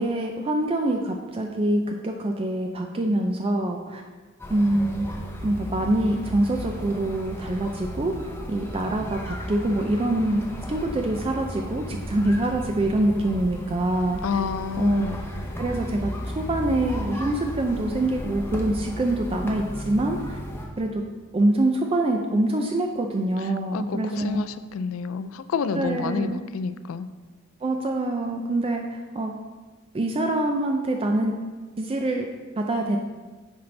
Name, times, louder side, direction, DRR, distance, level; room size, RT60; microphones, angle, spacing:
voice 1, 0.0-4.0 4.5-5.1 5.4-8.1 8.5-14.4 14.8-15.2 15.6-20.4 20.8-21.0 21.3-24.4 25.7-26.4 27.6-29.3 29.9-31.4 31.8-32.3 32.6-33.0, right 1 dB, 30° right, 3 dB, 0.4 m, -25 dB
sound 1, 4.4-20.7, equal, 10° left, 0.7 m, -35 dB
voice 2, 14.2-15.2 23.7-27.1, left 5 dB, 80° left, 13 dB, 0.3 m, -29 dB
9.4 x 4.2 x 3.2 m, 1.3 s
head